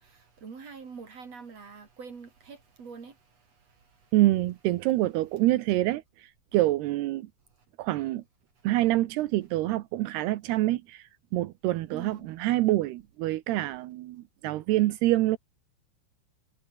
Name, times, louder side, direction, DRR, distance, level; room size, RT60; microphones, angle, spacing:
voice 1, 0.0-4.1 11.9-12.3, right 5 dB, 40° right, 3.5 m, -45 dB
voice 2, 4.1-7.3 7.8-8.2 8.6-15.4, right 16 dB, 75° right, 2.6 m, -26 dB
omnidirectional pair, 5.5 m